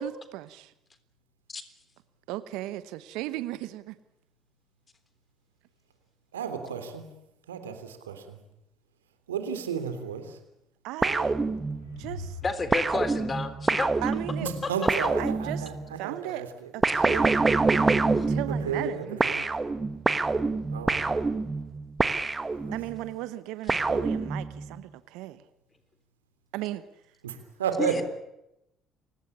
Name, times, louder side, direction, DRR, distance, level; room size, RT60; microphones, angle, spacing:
voice 1, 0.0-0.7 2.3-4.0 10.8-11.3 12.0-12.4 14.0-14.5 15.2-15.7 16.0-16.5 16.7-17.9 18.3-19.2 22.7-25.4 26.5-26.8, right 16 dB, 70° right, 14 dB, 1.1 m, -36 dB
voice 2, 6.3-7.0 7.5-8.4 9.3-10.4 14.4-16.7 18.5-19.5 20.7-21.0 22.6-22.8 23.7-23.8 27.2-27.9, right 7 dB, 85° right, 8 dB, 3.3 m, -33 dB
sound 1, 11.0-12.0 12.7-15.9 16.8-18.9 19.2-23.0 23.7-24.7, right 3 dB, 25° right, 1.6 m, -26 dB
sound 2, 11.5-14.6, left 1 dB, 85° left, 4.0 m, -44 dB
voice 3, 12.4-13.9 14.6-14.7 21.0-21.2 27.8-28.0, left 3 dB, 30° left, 12 dB, 3.5 m, -31 dB
29.5 x 17.5 x 8.7 m, 0.85 s
hypercardioid pair, 55°, 0 cm